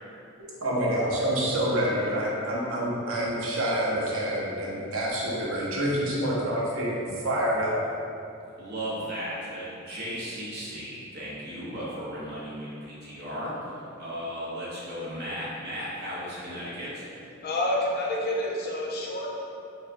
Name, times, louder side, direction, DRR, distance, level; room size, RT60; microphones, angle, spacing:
voice 1, 0.6-7.7, right 1 dB, 70° right, -5 dB, 0.7 m, -27 dB
voice 2, 8.6-17.1, equal, 50° right, -9 dB, 1.0 m, -35 dB
voice 3, 17.4-19.4, left 1 dB, 45° left, -3 dB, 0.5 m, -28 dB
4.2 x 2.2 x 2.6 m, 2.7 s
head